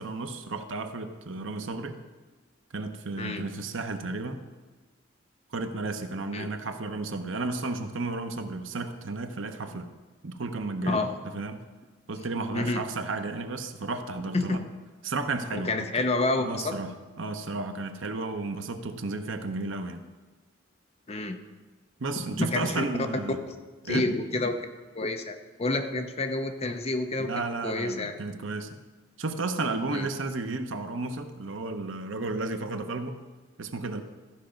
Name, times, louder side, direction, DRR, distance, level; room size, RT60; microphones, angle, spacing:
voice 1, 0.0-2.0 2.7-4.5 5.5-9.9 10.2-11.0 11.3-11.6 12.1-14.6 15.0-16.0 16.4-16.9 17.2-20.0 22.0-23.4 23.8-24.0 27.2-28.8 29.2-33.2 33.6-34.0, right 3 dB, 80° right, 7 dB, 0.8 m, -33 dB
voice 2, 10.9-11.2 12.5-12.8 14.3-14.6 15.5-16.8 21.1-21.4 22.1-22.8 23.5-23.6 23.8-24.6 24.9-28.1 29.9-30.1, left 2 dB, 35° left, 6 dB, 0.8 m, -29 dB
14.0 x 5.9 x 5.2 m, 1.3 s
head